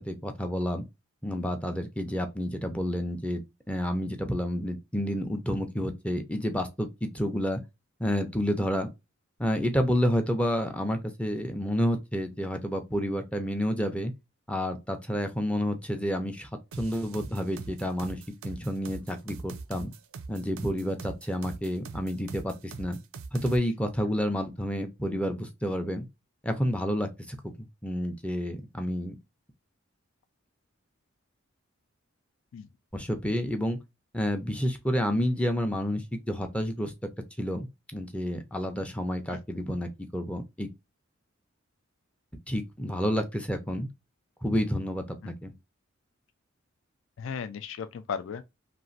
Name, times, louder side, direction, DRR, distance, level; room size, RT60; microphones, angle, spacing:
voice 1, 0.1-0.8 1.2-3.4 3.7-7.6 8.0-8.9 9.4-14.1 14.5-16.5 16.8-19.9 20.3-23.0 23.3-26.1 26.4-29.1 32.9-33.8 34.1-36.9 37.4-40.7 42.5-43.9 44.4-45.5, equal, 5° left, 0.5 m, -30 dB
sound 1, 16.7-23.6, right 4 dB, 85° right, 0.5 m, -42 dB
voice 2, 47.2-48.4, left 6 dB, 65° left, 0.3 m, -36 dB
3.0 x 2.5 x 2.5 m
head